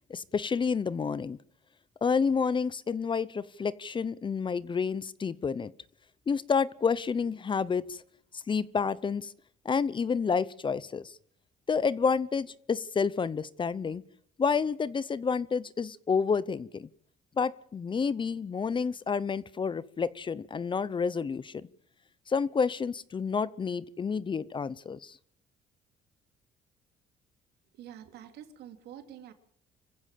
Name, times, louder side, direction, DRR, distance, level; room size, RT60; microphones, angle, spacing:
voice 1, 0.1-1.4 2.0-5.7 6.3-8.0 8.3-9.3 9.6-11.2 11.7-14.0 14.4-16.9 17.4-21.7 22.3-25.2, left 5 dB, 30° left, 19 dB, 0.8 m, -29 dB
voice 2, 27.7-29.3, right 10 dB, 75° right, 7 dB, 3.2 m, -47 dB
25.5 x 15.5 x 7.5 m, 0.66 s
cardioid pair, 110°, 17 cm